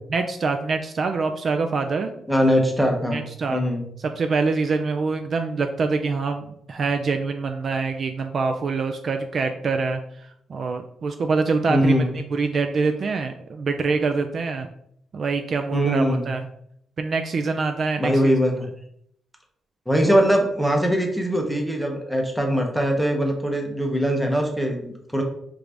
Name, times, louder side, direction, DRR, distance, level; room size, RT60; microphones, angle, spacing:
voice 1, 0.1-2.1 3.1-3.6 4.0-10.0 10.5-14.7 15.1-16.5 17.0-18.3 20.0-20.2, right 4 dB, 45° right, 6 dB, 0.3 m, -25 dB
voice 2, 2.3-3.2 3.5-3.8 11.7-12.1 15.7-16.3 18.0-18.7 19.9-25.2, equal, ahead, 1 dB, 0.7 m, -21 dB
4.7 x 2.5 x 3.3 m, 0.71 s
cardioid pair, 140°, 0 cm